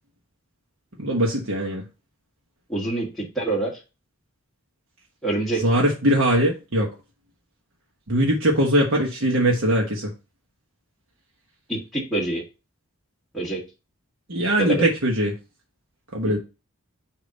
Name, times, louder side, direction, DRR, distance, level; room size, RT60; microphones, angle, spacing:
voice 1, 1.0-1.8 5.6-6.9 8.1-10.1 14.3-15.3 16.1-16.4, right 1 dB, 65° right, 0 dB, 1.2 m, -21 dB
voice 2, 2.7-3.8 5.2-5.6 11.7-12.4 13.3-13.6 14.6-14.9, right 2 dB, ahead, -4 dB, 1.6 m, -26 dB
6.6 x 2.9 x 5.2 m, 0.29 s
head